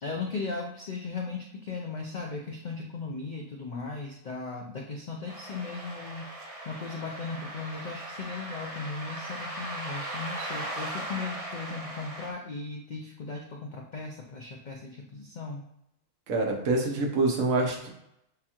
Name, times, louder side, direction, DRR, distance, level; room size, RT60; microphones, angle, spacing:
voice 1, 0.0-6.3 6.7-15.6, left 4 dB, 90° left, 0 dB, 0.4 m, -37 dB
sound 1, 5.3-12.3, right 1 dB, 45° right, 0.5 m, -38 dB
voice 2, 16.3-17.9, right 3 dB, 75° right, 1 dB, 1.3 m, -26 dB
6.8 x 2.4 x 2.9 m, 0.81 s
omnidirectional pair, 1.4 m